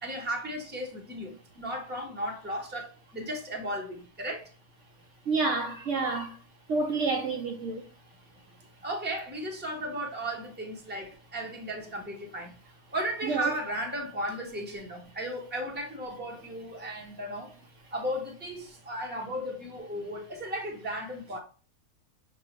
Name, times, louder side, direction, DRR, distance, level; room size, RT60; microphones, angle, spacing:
voice 1, 0.0-4.5 8.8-12.5 12.9-17.5 17.9-21.4, right 1 dB, 10° right, 0.7 m, -35 dB
voice 2, 5.3-6.4 6.7-7.9 13.3-13.5, right 3 dB, 65° right, 0.9 m, -28 dB
6.7 x 2.3 x 2.9 m
omnidirectional pair, 1.5 m